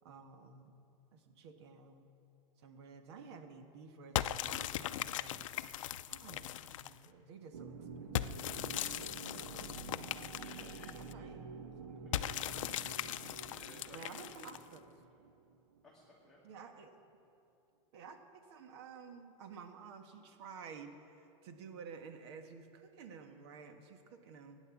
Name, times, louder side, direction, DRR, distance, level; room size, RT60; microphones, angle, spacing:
voice 1, 0.0-0.8 1.1-2.1 2.6-5.5 6.1-8.2 9.3-10.1 10.9-11.5 11.8-12.1 13.4-13.5 13.9-15.0 16.4-17.0 17.9-24.6, right 5 dB, 55° right, 6 dB, 1.5 m, -52 dB
sound 1, 4.2-7.1 8.2-11.1 12.1-14.8, left 12 dB, 85° left, 0.5 m, -39 dB
sound 2, 7.5-16.0, right 5 dB, 90° right, 1.3 m, -49 dB
voice 2, 10.3-11.3 11.9-12.2 13.1-14.5 15.1-15.2 15.8-16.4, left 1 dB, ahead, -7 dB, 1.8 m, -60 dB
16.5 x 9.7 x 7.3 m, 2.8 s
supercardioid pair, 170°, 16 cm